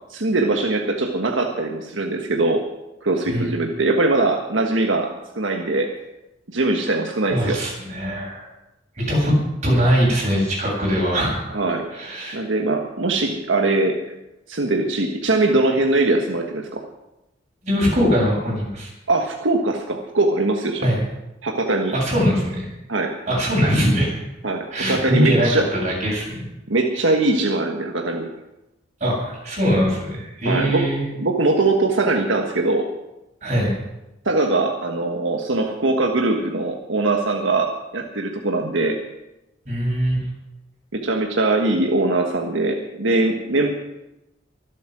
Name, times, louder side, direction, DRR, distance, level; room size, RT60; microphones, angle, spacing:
voice 1, 0.1-2.6 3.0-5.9 6.5-7.6 11.5-11.9 12.3-14.0 14.5-16.8 19.1-20.9 21.4-21.9 22.9-23.1 24.4-25.6 26.7-28.3 30.4-30.9 31.2-32.9 34.2-39.0 40.9-43.7, right 2 dB, 85° right, 2 dB, 1.5 m, -21 dB
voice 2, 7.3-8.5 9.0-9.3 9.6-11.4 11.9-12.3 17.6-18.9 20.8-21.0 21.9-22.7 23.3-24.2 24.7-26.5 29.0-31.0 33.4-33.8 39.7-40.2, equal, 40° right, -4 dB, 7.9 m, -21 dB
23.5 x 8.5 x 6.2 m, 0.95 s
head